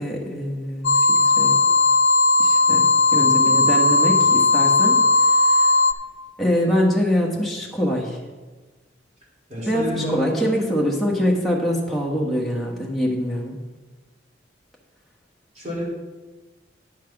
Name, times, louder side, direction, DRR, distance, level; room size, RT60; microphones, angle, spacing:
voice 1, 0.0-1.6 2.4-2.8 3.1-5.8 6.4-8.2 9.7-13.6, equal, ahead, -4 dB, 1.4 m, -24 dB
sound 1, 0.8-5.9, left 3 dB, 85° left, 0.5 m, -17 dB
voice 2, 3.2-3.6 9.5-10.7 15.5-15.8, equal, 35° right, -5 dB, 3.7 m, -30 dB
9.7 x 5.9 x 5.9 m, 1.2 s
head